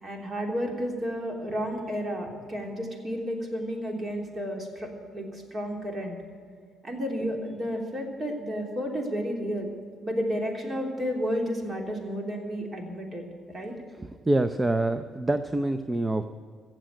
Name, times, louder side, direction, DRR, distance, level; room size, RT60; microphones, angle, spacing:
voice 1, 0.0-6.1 6.8-9.7 10.0-13.7, equal, 35° right, 1 dB, 3.3 m, -32 dB
voice 2, 14.0-16.2, right 2 dB, 15° right, 10 dB, 0.6 m, -26 dB
15.5 x 7.7 x 9.3 m, 2.1 s
cardioid pair, 90°, 0 cm